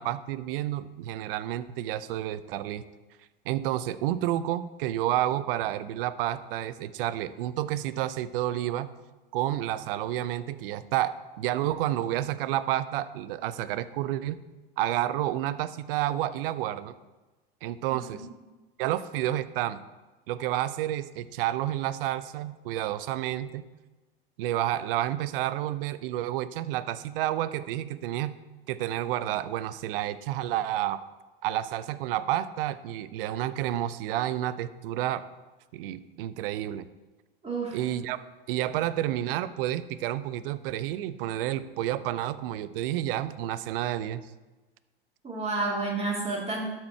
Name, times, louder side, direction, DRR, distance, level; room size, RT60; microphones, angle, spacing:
voice 1, 0.0-2.8 3.5-8.9 9.3-14.4 14.8-16.9 17.6-18.2 18.8-19.8 20.3-23.7 24.4-28.3 28.7-31.0 31.4-35.2 35.7-36.9 37.7-38.2 38.5-44.3, right 13 dB, 65° right, 15 dB, 0.6 m, -30 dB
voice 2, 17.9-18.3 37.4-37.8 45.2-46.8, right 3 dB, 20° right, -3 dB, 3.0 m, -31 dB
12.5 x 4.5 x 4.4 m, 1.2 s
hypercardioid pair, 90°, 30 cm